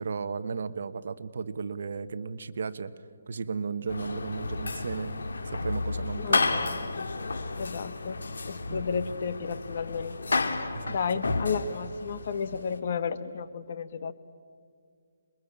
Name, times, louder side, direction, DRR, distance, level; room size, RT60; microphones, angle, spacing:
voice 1, 0.0-2.9 3.3-5.1 5.5-6.6 8.7-8.8 10.7-11.0 11.3-11.4, right 5 dB, 55° right, 11 dB, 1.2 m, -34 dB
sound 1, 3.9-12.8, left 3 dB, 85° left, 2.4 m, -32 dB
voice 2, 6.2-7.1 7.6-10.2 10.9-14.1, left 6 dB, 45° left, 12 dB, 1.2 m, -33 dB
27.0 x 22.5 x 8.7 m, 2.2 s
hypercardioid pair, 170°, 0 cm